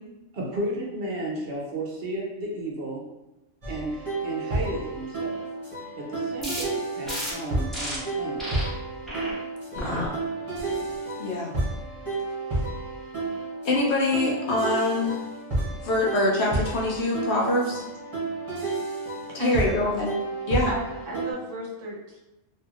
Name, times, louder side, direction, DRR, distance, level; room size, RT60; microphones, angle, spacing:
voice 1, 0.3-3.0 3.7-5.4 6.0-8.6, right 1 dB, 55° right, -2 dB, 0.8 m, -33 dB
sound 1, 3.6-21.3, right 2 dB, 30° right, 0.9 m, -31 dB
sound 2, 6.4-6.6 7.1-7.3 7.7-8.0 8.4-8.6 9.0-9.3 9.8-10.1 10.6-10.9, equal, ahead, 0.6 m, -32 dB
voice 2, 9.7-10.1 11.2-11.5 13.6-15.2 15.8-17.9 19.3-20.1 20.5-20.7, left 2 dB, 65° left, -3 dB, 0.9 m, -24 dB
voice 3, 19.4-19.9 20.7-22.2, right 1 dB, 80° right, -3 dB, 1.1 m, -33 dB
3.0 x 2.6 x 2.4 m, 1.0 s
omnidirectional pair, 1.3 m